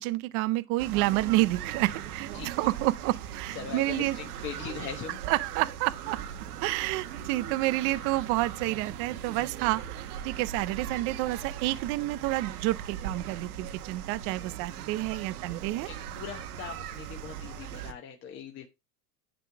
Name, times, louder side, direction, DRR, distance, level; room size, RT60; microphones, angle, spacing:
voice 1, 0.0-4.2 5.3-6.2 6.6-15.9, right 18 dB, 35° right, 0.4 m, -29 dB
sound 1, 0.8-17.9, right 9 dB, 75° right, 1.3 m, -39 dB
voice 2, 2.3-2.7 3.5-5.2 15.1-15.3 15.8-18.7, left 7 dB, 25° left, 1.1 m, -41 dB
10.5 x 3.7 x 4.6 m
supercardioid pair, 135°, 45 cm